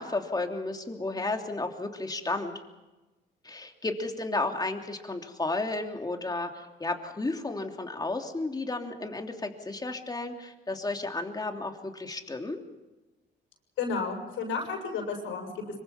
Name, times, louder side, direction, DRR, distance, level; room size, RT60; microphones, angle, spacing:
voice 1, 0.0-2.5 3.4-12.6, left 2 dB, 20° left, 3 dB, 3.1 m, -33 dB
voice 2, 13.8-15.8, left 4 dB, 90° left, 1 dB, 7.2 m, -32 dB
25.5 x 23.5 x 5.8 m, 1.1 s
cardioid pair, 90°, 20 cm